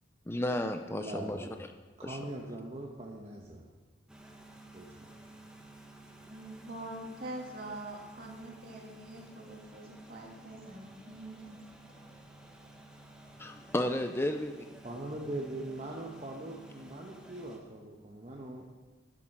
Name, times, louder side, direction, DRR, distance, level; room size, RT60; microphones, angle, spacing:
voice 1, 0.3-1.5 2.0-2.2 13.4-14.7, left 1 dB, 15° left, 7 dB, 0.5 m, -33 dB
voice 2, 0.9-1.6 2.0-3.7 4.7-5.1 14.8-18.7, right 1 dB, 35° right, -2 dB, 1.2 m, -41 dB
sound 1, 4.1-17.6, right 2 dB, 5° right, 1.4 m, -53 dB
voice 3, 6.3-11.6 11.9-12.0, right 1 dB, 50° right, -1 dB, 2.6 m, -44 dB
11.0 x 11.0 x 6.1 m, 1.3 s
head